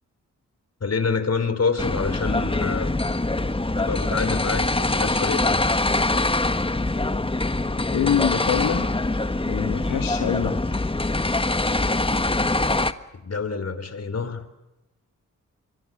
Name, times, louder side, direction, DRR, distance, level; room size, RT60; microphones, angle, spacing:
voice 1, 0.8-3.0 3.8-5.6 13.2-14.4, left 4 dB, 50° left, 11 dB, 4.0 m, -27 dB
sound 1, 1.8-12.9, left 2 dB, 15° left, 1.5 m, -24 dB
voice 2, 7.9-8.8 9.5-10.8, left 9 dB, 80° left, 5 dB, 1.7 m, -25 dB
27.0 x 23.5 x 6.7 m, 0.97 s
supercardioid pair, 50°, 33 cm